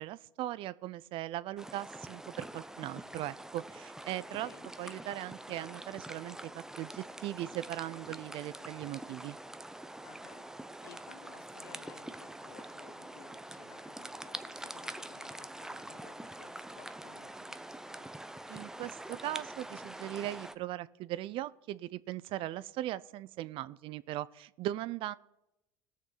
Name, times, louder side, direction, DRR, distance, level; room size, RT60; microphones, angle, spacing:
voice 1, 0.0-4.5 4.8-9.4 18.5-25.1, right 14 dB, 55° right, 18 dB, 0.5 m, -39 dB
sound 1, 1.6-20.5, right 1 dB, 5° right, 0.6 m, -45 dB
voice 2, 4.3-4.7 10.0-18.1, left 9 dB, 80° left, 10 dB, 1.1 m, -57 dB
19.0 x 6.5 x 4.0 m, 0.91 s
supercardioid pair, 90°, 11 cm